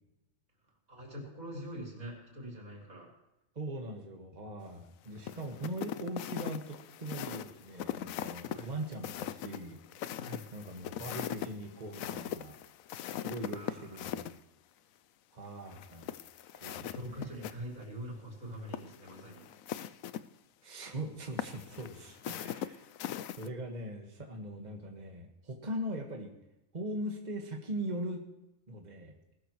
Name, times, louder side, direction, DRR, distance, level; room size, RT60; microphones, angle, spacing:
voice 1, 0.9-3.1 8.4-8.7 10.1-10.5 13.4-14.2 16.8-19.5, equal, 85° right, -2 dB, 4.6 m, -44 dB
voice 2, 3.6-9.8 10.5-12.6 13.2-14.3 15.3-16.1 16.5-17.5 20.6-22.9 23.2-26.3 26.7-28.3 28.7-29.1, right 1 dB, 35° right, 2 dB, 1.8 m, -41 dB
sound 1, 5.2-14.4 15.7-17.5 17.8-17.9 18.6-20.2 21.4-23.5, left 10 dB, 80° left, 1.0 m, -40 dB
19.5 x 13.0 x 3.1 m, 0.94 s
omnidirectional pair, 1.4 m